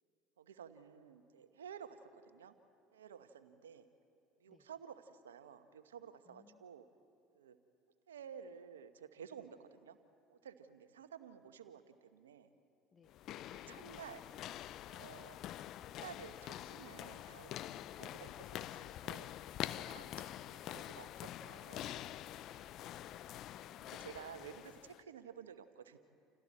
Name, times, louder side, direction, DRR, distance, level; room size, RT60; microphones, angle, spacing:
voice 1, 0.4-2.5 2.9-3.9 4.4-6.8 7.3-7.6 8.1-10.0 10.3-12.5 13.5-14.2 14.9-15.4 15.9-19.3 19.8-21.9 23.8-26.0, right 8 dB, 85° right, 10 dB, 1.1 m, -53 dB
voice 2, 6.2-6.7 12.9-13.2, left 6 dB, 35° left, 11 dB, 1.2 m, -68 dB
sound 1, 13.1-25.0, left 12 dB, 55° left, 0.5 m, -46 dB
29.5 x 28.5 x 4.3 m, 2.5 s
hypercardioid pair, 65°, 0 cm